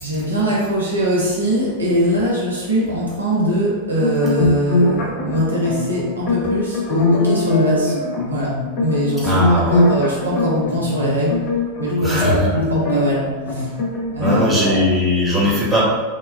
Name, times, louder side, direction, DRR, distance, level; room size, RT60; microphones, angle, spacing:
voice 1, 0.0-8.0 8.3-11.5 11.8-13.8 14.1-14.8 15.4-15.6, equal, 80° right, -6 dB, 0.7 m, -21 dB
sound 1, 4.0-14.4, left 2 dB, 45° left, 0.7 m, -21 dB
voice 2, 9.2-9.8 12.0-12.6 14.2-15.8, left 1 dB, 10° right, -8 dB, 1.1 m, -19 dB
3.8 x 2.2 x 2.3 m, 1.3 s
figure-of-eight pair, 90°, 0 cm